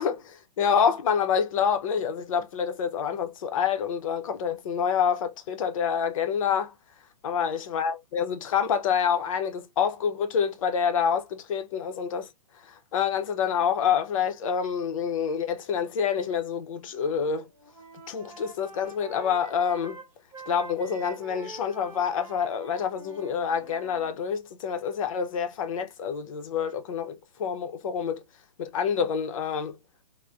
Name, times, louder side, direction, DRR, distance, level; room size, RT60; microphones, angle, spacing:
voice 1, 0.0-6.7 7.2-12.3 12.9-17.5 18.1-20.0 20.5-28.2 28.6-29.8, left 7 dB, 55° left, 0.7 m, -27 dB
Wind instrument woodwind instrument, 16.9-17.3 17.6-24.1, right 3 dB, 10° right, 0.9 m, -46 dB
3.5 x 2.1 x 2.5 m
hypercardioid pair, 145°, 21 cm